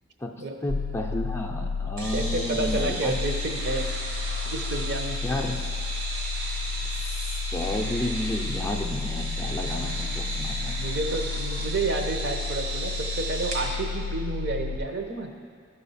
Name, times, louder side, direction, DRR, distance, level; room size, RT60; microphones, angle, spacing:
voice 1, 0.6-3.1 5.2-5.6 7.5-10.7, left 1 dB, 15° left, 0 dB, 0.5 m, -31 dB
sound 1, 0.7-14.8, left 4 dB, 65° left, 0.5 m, -32 dB
sound 2, 2.0-13.7, right 2 dB, 75° right, 1.6 m, -35 dB
voice 2, 2.1-3.9 4.5-5.2 9.8-10.0 10.8-15.3, right 2 dB, 60° right, 3 dB, 0.8 m, -30 dB
12.0 x 4.2 x 5.6 m, 2.1 s
head